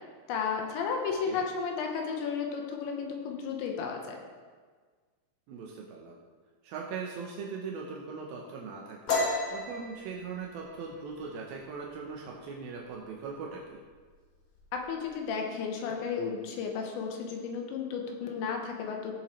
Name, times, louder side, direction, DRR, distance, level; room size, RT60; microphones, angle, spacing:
voice 1, 0.3-4.2 14.7-19.2, left 6 dB, 80° left, 2 dB, 3.2 m, -33 dB
voice 2, 5.5-6.2 6.6-9.2 9.5-13.8, right 5 dB, 85° right, -2 dB, 2.1 m, -40 dB
sound 1, 9.1-12.5 12.8-13.2 13.5-14.1 14.3-15.1, left 3 dB, 65° left, 1.6 m, -34 dB
16.5 x 7.0 x 3.2 m, 1.5 s
omnidirectional pair, 5.4 m